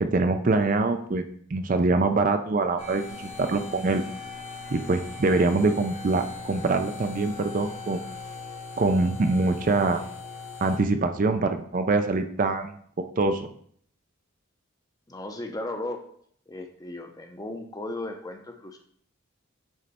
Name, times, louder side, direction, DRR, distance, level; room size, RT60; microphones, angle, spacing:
voice 1, 0.0-1.2 1.5-4.0 4.7-8.0 8.8-10.0 10.6-12.7 13.2-13.5, right 3 dB, 40° right, 8 dB, 0.4 m, -24 dB
sound 1, 2.8-10.8, left 4 dB, 65° left, 2.3 m, -40 dB
voice 2, 15.1-16.0 16.5-18.8, left 2 dB, 15° left, 4 dB, 0.6 m, -36 dB
9.2 x 3.2 x 4.2 m, 0.62 s
head